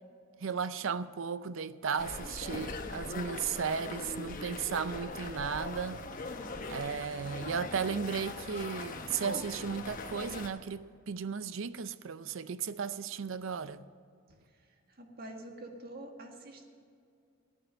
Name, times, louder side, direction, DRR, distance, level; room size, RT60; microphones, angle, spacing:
voice 1, 0.4-6.0 6.7-13.8, right 6 dB, 80° right, 0.5 m, -35 dB
sound 1, 2.0-10.5, left 3 dB, 45° left, 1.1 m, -41 dB
voice 2, 14.3-16.6, right 1 dB, 50° right, 1.7 m, -47 dB
14.5 x 9.2 x 6.5 m
head